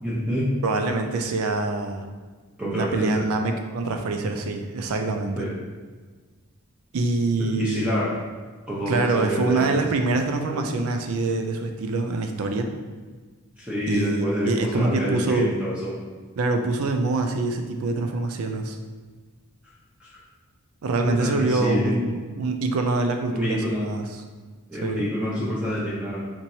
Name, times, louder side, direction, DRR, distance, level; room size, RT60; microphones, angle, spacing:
voice 1, 0.0-0.5 2.6-3.3 5.4-5.5 7.6-8.1 8.7-9.7 10.5-10.6 13.6-15.9 20.0-20.1 21.0-22.0 23.3-23.9 24.7-26.3, equal, 5° right, -9 dB, 0.6 m, -27 dB
voice 2, 0.6-2.0 2.7-5.4 6.9-8.0 8.9-12.7 13.9-15.5 16.4-18.8 20.8-24.2 24.8-25.1, right 3 dB, 70° right, 5 dB, 0.4 m, -25 dB
4.5 x 2.9 x 2.7 m, 1.4 s
head